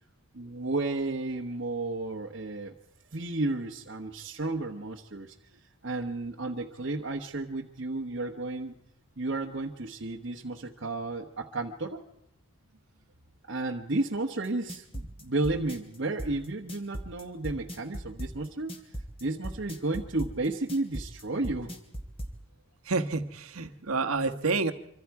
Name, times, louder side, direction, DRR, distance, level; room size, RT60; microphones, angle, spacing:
voice 1, 0.3-2.7 3.1-5.3 5.8-8.7 9.2-12.0 13.5-18.7 19.2-21.7, right 2 dB, 55° right, 0 dB, 1.1 m, -32 dB
sound 1, 14.4-22.3, equal, 25° left, 2.4 m, -37 dB
voice 2, 22.8-24.7, right 3 dB, 80° right, 8 dB, 1.3 m, -28 dB
25.5 x 25.5 x 4.7 m, 0.77 s
head